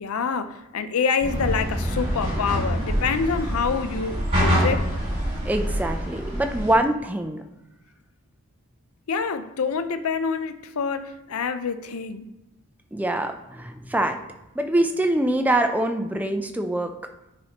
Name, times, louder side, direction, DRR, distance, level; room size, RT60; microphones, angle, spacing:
voice 1, 0.0-4.9 9.1-12.3, left 5 dB, 75° left, 0.5 m, -26 dB
sound 1, 1.2-6.7, equal, 25° right, 2.5 m, -25 dB
voice 2, 5.4-7.4 12.9-14.2 14.5-17.0, right 1 dB, 5° right, 0.4 m, -24 dB
9.6 x 4.2 x 2.9 m
head